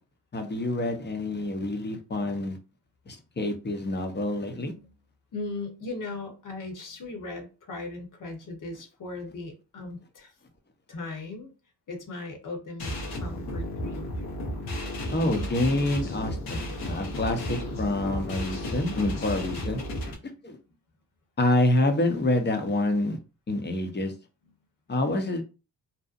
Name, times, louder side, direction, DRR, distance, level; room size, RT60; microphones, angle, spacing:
voice 1, 0.3-2.6 3.1-4.7 15.1-19.8 20.4-20.6 21.4-23.2 23.5-24.1 24.9-25.4, left 1 dB, 30° left, 5 dB, 0.7 m, -27 dB
voice 2, 5.3-10.3 10.9-11.5 11.9-14.1, left 3 dB, 55° left, 4 dB, 1.0 m, -38 dB
sound 1, 12.8-20.1, left 1 dB, 85° left, 0.8 m, -33 dB
2.7 x 2.1 x 2.4 m, 0.31 s
cardioid pair, 65°, 38 cm